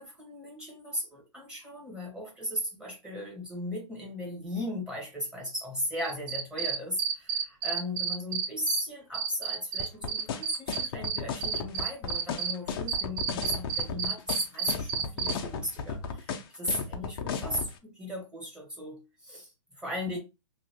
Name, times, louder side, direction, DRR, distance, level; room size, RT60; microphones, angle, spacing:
voice 1, 0.0-20.2, left 1 dB, 5° right, 1.5 m, -37 dB
Cricket, 6.0-8.8 9.1-12.5 12.9-15.3, right 7 dB, 35° right, 0.6 m, -30 dB
sound 1, 9.8-17.7, left 6 dB, 45° left, 0.7 m, -34 dB
3.0 x 2.7 x 2.8 m
hypercardioid pair, 135°, 17 cm